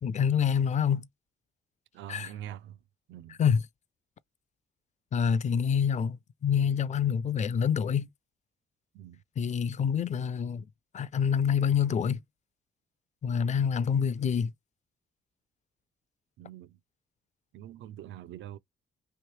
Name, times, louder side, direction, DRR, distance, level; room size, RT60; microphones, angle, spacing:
voice 1, 0.0-1.1 2.1-2.3 3.4-3.6 5.1-8.1 9.4-10.7 10.9-12.2 13.2-14.5, left 7 dB, 35° left, 0.4 m, -26 dB
voice 2, 1.9-2.8 3.1-3.4 8.9-9.2 16.4-16.8 17.5-18.6, right 11 dB, 75° right, 0.5 m, -44 dB
3.1 x 2.7 x 3.1 m
cardioid pair, 90°, 20 cm